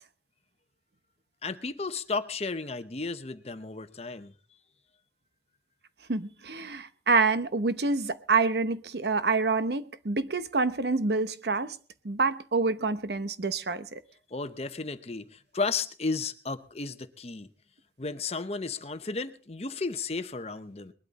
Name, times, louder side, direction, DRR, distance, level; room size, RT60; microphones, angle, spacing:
voice 1, 1.4-4.3 14.3-17.5 18.0-20.9, left 4 dB, 35° left, 0.8 m, -33 dB
voice 2, 6.1-11.8 12.0-14.0, right 4 dB, 65° right, 0.9 m, -27 dB
20.5 x 12.0 x 4.1 m
head